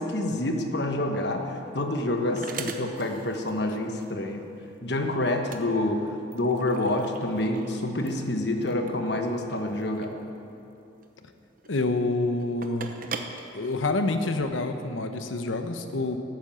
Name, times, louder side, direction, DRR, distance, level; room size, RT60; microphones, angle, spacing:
voice 1, 0.0-4.4 4.8-10.2, left 1 dB, 60° left, 4 dB, 1.3 m, -28 dB
sound 1, 1.1-14.4, right 4 dB, 45° right, 0.8 m, -43 dB
voice 2, 11.7-12.9 13.5-16.2, left 2 dB, 85° left, 7 dB, 1.0 m, -27 dB
13.5 x 8.9 x 7.8 m, 2.8 s
head